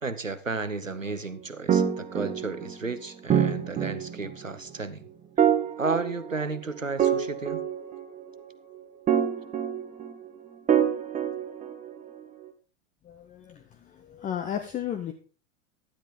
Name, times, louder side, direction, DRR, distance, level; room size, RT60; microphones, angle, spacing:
voice 1, 0.0-5.1 5.4-5.5 5.8-7.7, right 3 dB, 90° right, 13 dB, 1.0 m, -33 dB
sound 1, 1.7-2.9 3.3-4.5 5.4-6.6 7.0-8.4 9.1-10.3 10.7-12.1, right 9 dB, 20° right, 1.7 m, -26 dB
voice 2, 13.0-15.1, left 9 dB, 20° left, 7 dB, 0.9 m, -34 dB
12.5 x 10.5 x 3.7 m, 0.36 s
figure-of-eight pair, 90°, 38 cm